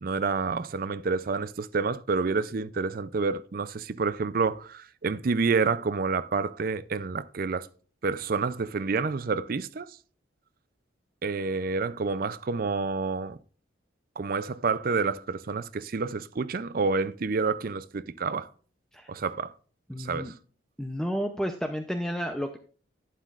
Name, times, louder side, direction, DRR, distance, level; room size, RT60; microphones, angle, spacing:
voice 1, 0.0-7.7 8.0-10.0 11.2-13.4 14.2-18.5 19.1-19.5 20.0-20.3, right 4 dB, 50° right, 0.4 m, -28 dB
voice 2, 19.9-20.3 20.8-22.6, equal, 5° left, 0.6 m, -31 dB
11.5 x 9.2 x 2.4 m
head